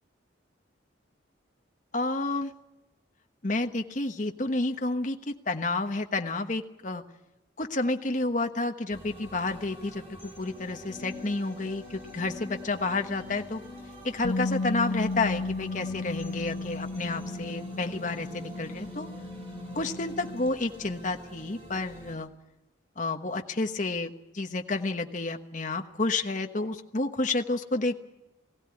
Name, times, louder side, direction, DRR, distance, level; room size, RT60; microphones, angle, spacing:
voice 1, 1.9-2.5 3.4-7.0 7.6-13.6 14.0-19.1 19.7-22.3 23.0-28.0, left 2 dB, 40° left, 6 dB, 1.2 m, -30 dB
sound 1, 8.9-22.2, equal, 30° right, 4.3 m, -45 dB
Bass guitar, 14.2-20.5, left 3 dB, 80° left, 0.7 m, -34 dB
20.0 x 16.5 x 9.8 m, 0.97 s
head